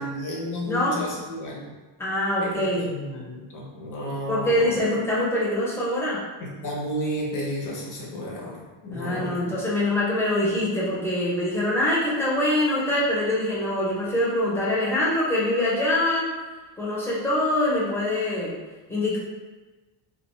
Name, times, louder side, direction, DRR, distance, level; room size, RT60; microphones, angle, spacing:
voice 1, 0.0-1.7 2.4-4.8 6.4-9.6, equal, 40° left, -3 dB, 0.8 m, -32 dB
voice 2, 0.6-1.0 2.0-2.9 4.3-6.2 8.9-16.2 16.8-18.5 18.9-19.2, left 1 dB, 5° left, -7 dB, 0.6 m, -24 dB
2.3 x 2.3 x 3.1 m, 1.2 s
cardioid pair, 130°, 47 cm